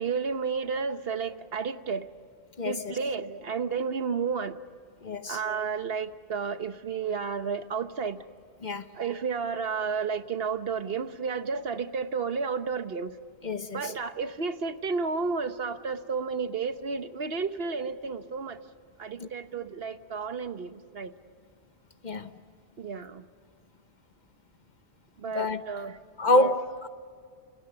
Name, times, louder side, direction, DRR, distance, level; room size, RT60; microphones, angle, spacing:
voice 1, 0.0-2.1 2.6-4.6 5.3-8.3 8.9-13.2 13.7-18.6 19.0-21.1 22.8-23.3 25.2-26.0 26.3-26.5, right 5 dB, 60° right, 1.2 m, -32 dB
voice 2, 2.6-2.9 5.0-5.4 8.6-8.8 13.4-13.8 19.2-19.3 22.0-22.3 25.3-25.6 26.2-26.9, left 2 dB, 45° left, 1.0 m, -27 dB
29.0 x 27.5 x 6.8 m
omnidirectional pair, 1.1 m